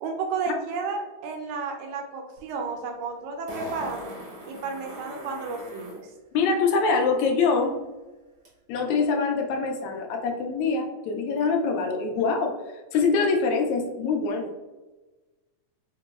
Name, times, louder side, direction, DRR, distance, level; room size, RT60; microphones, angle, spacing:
voice 1, 0.0-4.1 4.5-6.1, right 4 dB, 80° right, 3 dB, 1.7 m, -32 dB
Fart, 2.4-2.5 3.5-6.0 8.4-8.5, equal, 55° right, 0.8 m, -39 dB
voice 2, 6.3-7.7 8.7-12.6 12.9-14.5, left 4 dB, 80° left, 2 dB, 1.7 m, -24 dB
5.4 x 2.9 x 2.3 m, 1.2 s
omnidirectional pair, 3.7 m